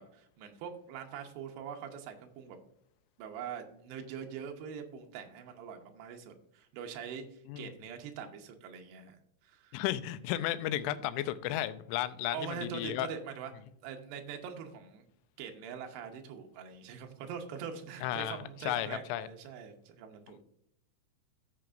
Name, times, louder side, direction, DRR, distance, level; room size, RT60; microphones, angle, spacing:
voice 1, 0.0-2.6 3.2-9.8 12.3-13.5 13.8-15.1 15.4-20.4, right 7 dB, 80° right, 4 dB, 2.5 m, -43 dB
voice 2, 9.7-13.1 18.0-18.4 18.7-19.3, left 14 dB, 85° left, 12 dB, 2.8 m, -33 dB
15.0 x 5.8 x 2.5 m, 0.74 s
omnidirectional pair, 5.7 m